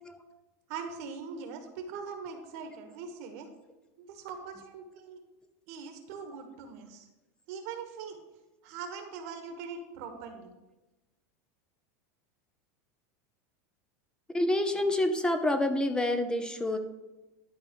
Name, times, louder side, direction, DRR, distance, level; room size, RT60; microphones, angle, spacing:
voice 1, 0.7-3.5 4.0-5.2 5.7-7.1 7.5-8.2 8.6-10.5, right 5 dB, 65° right, 6 dB, 1.8 m, -41 dB
voice 2, 14.3-16.8, left 1 dB, 10° left, 7 dB, 0.8 m, -27 dB
12.0 x 4.1 x 6.4 m, 1.1 s
supercardioid pair, 130°, 9 cm